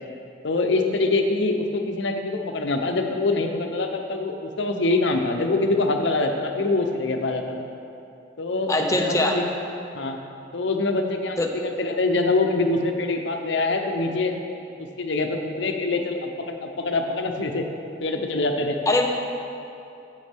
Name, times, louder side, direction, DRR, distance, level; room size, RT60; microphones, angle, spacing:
voice 1, 0.4-7.6 8.4-9.5 9.9-10.2 10.5-14.3 14.8-17.7 18.0-18.8, left 2 dB, 75° left, 4 dB, 0.7 m, -24 dB
voice 2, 8.7-9.4 11.4-11.5 18.9-19.1, left 2 dB, 15° left, 2 dB, 0.6 m, -21 dB
9.4 x 8.3 x 3.5 m, 2.7 s
head